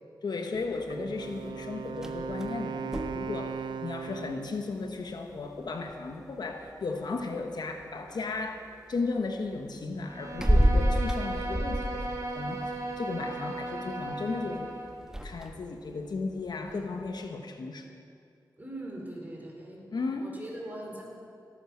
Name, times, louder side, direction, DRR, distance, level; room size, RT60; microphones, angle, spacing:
voice 1, 0.2-8.6 8.9-14.8 15.2-17.9 19.9-20.4, left 3 dB, 65° left, 5 dB, 1.1 m, -35 dB
sound 1, 0.5-17.3, equal, 10° right, 1.3 m, -34 dB
Wind instrument woodwind instrument, 0.9-4.7, right 6 dB, 75° right, 0.5 m, -38 dB
Bowed string instrument, 10.0-15.0, right 1 dB, 45° right, 2.2 m, -36 dB
voice 2, 18.6-19.9 20.2-21.0, right 1 dB, 25° right, -1 dB, 4.2 m, -41 dB
17.0 x 9.1 x 6.1 m, 2.3 s
cardioid pair, 60°, 8 cm